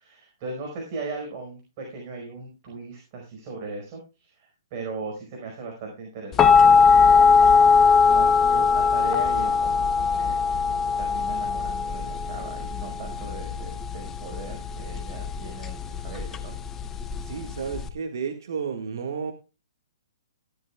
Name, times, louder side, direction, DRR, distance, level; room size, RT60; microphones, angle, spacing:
voice 1, 0.0-7.4 8.0-10.4 10.7-16.6, right 3 dB, 35° right, 1 dB, 5.1 m, -38 dB
sound 1, 6.4-17.9, left 5 dB, 15° left, 0.9 m, -20 dB
voice 2, 17.2-19.3, right 6 dB, 70° right, 4 dB, 1.8 m, -32 dB
16.5 x 12.5 x 2.4 m, 0.30 s
hypercardioid pair, 150°, 2 cm